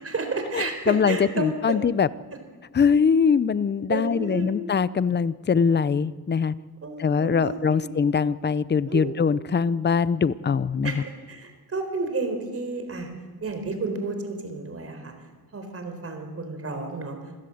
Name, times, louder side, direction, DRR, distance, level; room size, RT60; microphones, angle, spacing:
voice 1, 0.0-1.8 3.9-4.6 6.8-8.0 8.9-9.2 10.8-13.1 13.4-15.1 15.5-17.4, right 3 dB, 35° right, 6 dB, 4.4 m, -31 dB
voice 2, 0.5-2.1 2.7-6.5 7.0-10.9, left 6 dB, 30° left, 17 dB, 0.6 m, -22 dB
27.0 x 16.5 x 7.9 m, 1.4 s
wide cardioid pair, 130°, 38 cm